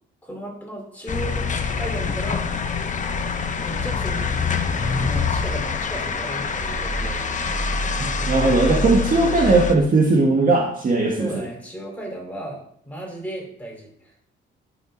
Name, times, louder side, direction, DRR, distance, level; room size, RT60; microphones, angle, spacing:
voice 1, 0.2-1.5 1.7-2.9 3.6-4.5 4.8-7.6 8.8-9.3 11.2-14.1, right 1 dB, 5° left, -2 dB, 4.4 m, -35 dB
sound 1, 1.1-9.7, left 4 dB, 40° left, 1.0 m, -25 dB
voice 2, 8.0-11.3, right 3 dB, 45° right, 0 dB, 1.8 m, -18 dB
10.5 x 6.2 x 4.0 m, 0.63 s
cardioid pair, 90°, 20 cm